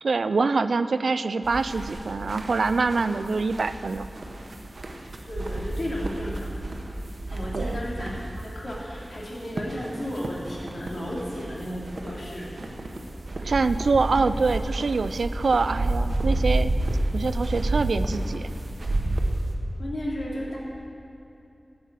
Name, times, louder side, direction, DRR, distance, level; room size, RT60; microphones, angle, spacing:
voice 1, 0.0-4.1 7.5-7.8 13.4-16.7 17.1-18.5, right 4 dB, 90° right, 12 dB, 0.3 m, -25 dB
sound 1, 1.4-19.5, right 2 dB, 70° right, 1.0 m, -30 dB
voice 2, 5.3-6.7 7.3-12.5 19.8-20.6, equal, 65° left, -5 dB, 2.7 m, -34 dB
11.5 x 6.2 x 8.1 m, 2.8 s
wide cardioid pair, 65°, 0 cm